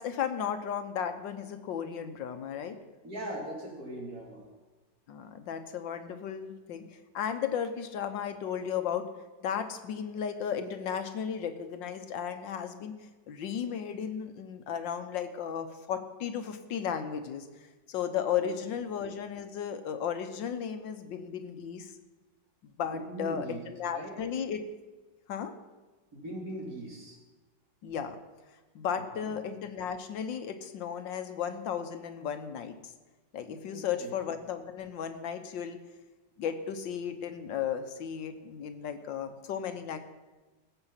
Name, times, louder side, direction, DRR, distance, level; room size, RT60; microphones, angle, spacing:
voice 1, 0.0-2.8 5.1-6.8 7.1-9.1 9.4-12.9 13.3-17.5 17.9-21.9 22.8-24.6 25.3-25.5 27.8-28.2 28.8-32.9 33.3-35.8 36.4-40.0, left 8 dB, 90° left, 8 dB, 1.7 m, -35 dB
voice 2, 3.0-4.5 18.4-18.5 22.9-23.6 23.9-24.2 26.1-27.2 28.9-29.3 33.7-34.1, right 1 dB, 55° right, -3 dB, 3.7 m, -40 dB
18.5 x 8.0 x 5.7 m, 1.2 s
omnidirectional pair, 1.9 m